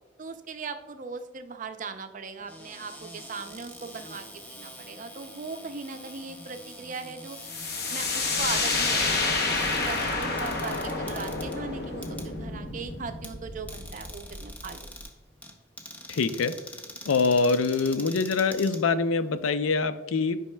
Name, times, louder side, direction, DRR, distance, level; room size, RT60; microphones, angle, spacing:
voice 1, 0.2-7.4 7.9-14.9, right 4 dB, 40° right, 8 dB, 0.5 m, -39 dB
Cupboard open or close, 2.4-19.5, left 1 dB, 10° left, 0.6 m, -45 dB
sound 1, 7.4-15.0, left 3 dB, 55° left, 0.8 m, -29 dB
voice 2, 16.1-16.6 17.1-20.4, left 4 dB, 90° left, 12 dB, 0.5 m, -24 dB
10.0 x 5.5 x 2.2 m, 1.2 s
head